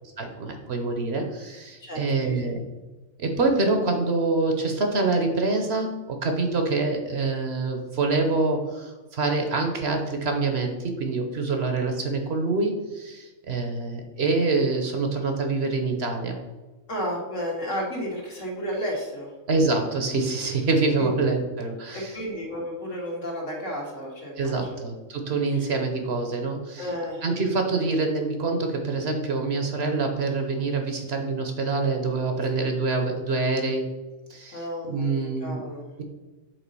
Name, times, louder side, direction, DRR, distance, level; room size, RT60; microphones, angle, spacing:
voice 1, 0.2-2.6 3.2-16.4 19.5-22.2 24.4-26.9 27.2-33.9 34.3-35.6 36.0-36.1, right 3 dB, 55° right, 4 dB, 1.1 m, -26 dB
voice 2, 1.8-2.5 16.9-19.3 21.0-21.1 21.9-24.9 26.8-27.3 27.7-27.8 34.5-35.9, equal, 65° left, -2 dB, 2.0 m, -32 dB
7.3 x 3.8 x 5.4 m, 1.2 s
omnidirectional pair, 1.4 m